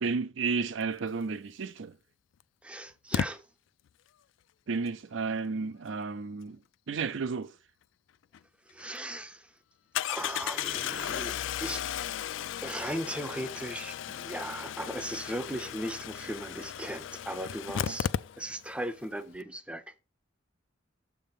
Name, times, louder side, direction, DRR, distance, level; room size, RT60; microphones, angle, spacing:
voice 1, 0.0-1.9 4.7-6.6 6.9-7.5 17.9-18.0, right 4 dB, 70° right, 0.5 m, -32 dB
Engine starting, 1.6-1.7 3.1-3.3 8.3-8.4 8.8-8.9 9.9-18.8 19.0-19.1 19.3-19.4, left 9 dB, 75° left, 0.3 m, -35 dB
voice 2, 2.6-3.4 8.7-9.5 10.1-11.8 12.6-18.1 18.4-20.0, right 1 dB, 5° right, 0.5 m, -37 dB
7.4 x 3.5 x 5.5 m
head